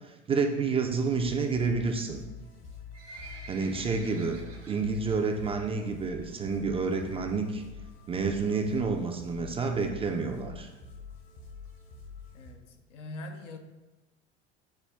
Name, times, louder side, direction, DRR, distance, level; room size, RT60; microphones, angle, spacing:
voice 1, 0.3-2.2 3.5-4.4 4.7-7.6 8.1-10.7, right 4 dB, 15° right, 0.3 m, -29 dB
sound 1, 1.1-12.5, left 4 dB, 65° left, 1.0 m, -47 dB
Livestock farm animals working animals, 2.5-5.2 5.6-5.8 6.1-6.2 6.9-7.0 7.3-7.4 7.6-7.7 8.2-8.5 9.1-9.2 9.4-9.5 9.6-9.7 10.0-10.1 10.5-10.6 11.1-11.2 11.6-11.7, right 3 dB, 80° right, 1.1 m, -48 dB
voice 2, 12.3-13.6, left 2 dB, 90° left, 0.5 m, -43 dB
5.7 x 2.2 x 3.3 m
hypercardioid pair, 80°, 36 cm